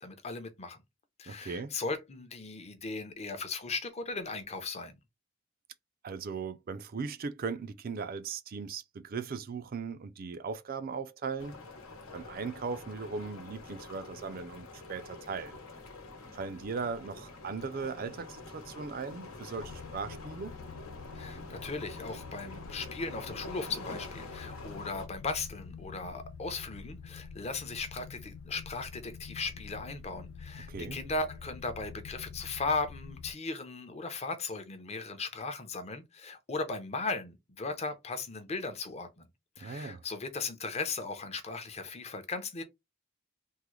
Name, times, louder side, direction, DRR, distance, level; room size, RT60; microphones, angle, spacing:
voice 1, 0.0-0.8 1.2-5.0 21.1-39.3 39.6-42.6, left 3 dB, 30° left, 0.6 m, -37 dB
voice 2, 1.3-1.8 6.0-11.5 12.1-15.6 16.3-20.6 30.7-31.0 39.6-40.0, right 5 dB, 45° right, 0.4 m, -38 dB
sound 1, 11.4-25.1, left 3 dB, 85° left, 1.0 m, -46 dB
sound 2, 19.6-33.3, left 5 dB, 70° left, 0.3 m, -47 dB
3.6 x 2.1 x 3.1 m
head